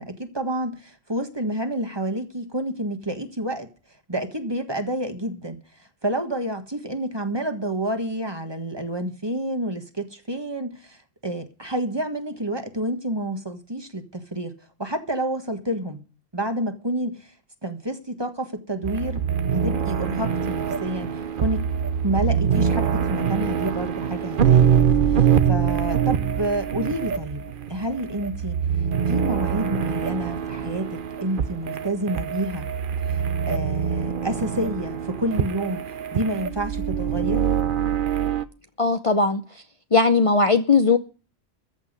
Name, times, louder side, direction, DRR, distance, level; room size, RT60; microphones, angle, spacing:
voice 1, 0.0-3.7 4.1-5.6 6.0-16.0 16.3-17.3 17.6-19.2 19.5-21.1 21.4-21.7 22.0-24.7 25.1-28.6 29.1-32.7 33.1-37.5, right 1 dB, 25° right, 1.6 m, -29 dB
sound 1, 18.8-38.5, right 7 dB, 55° right, 0.9 m, -24 dB
voice 2, 38.8-39.4 39.9-41.0, left 4 dB, 35° left, 0.8 m, -18 dB
14.0 x 6.1 x 9.6 m
omnidirectional pair, 1.1 m